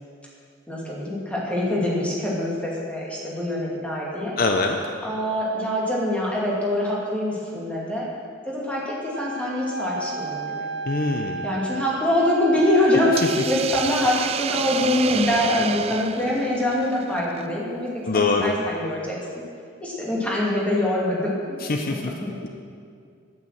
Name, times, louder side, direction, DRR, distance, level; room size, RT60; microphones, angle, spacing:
voice 1, 0.7-4.4 5.0-8.1 8.5-10.7 11.4-13.1 13.5-19.2 19.8-21.3 21.9-22.4, left 1 dB, 5° left, -5 dB, 2.5 m, -24 dB
voice 2, 4.4-4.8 10.9-11.4 18.1-18.5 21.6-22.1, left 3 dB, 50° left, 4 dB, 0.6 m, -23 dB
Wind instrument woodwind instrument, 9.1-13.5, right 2 dB, 60° right, 0.7 m, -32 dB
Hiss, 13.2-17.4, right 7 dB, 30° right, 0.3 m, -30 dB
9.1 x 8.7 x 7.7 m, 2.3 s
head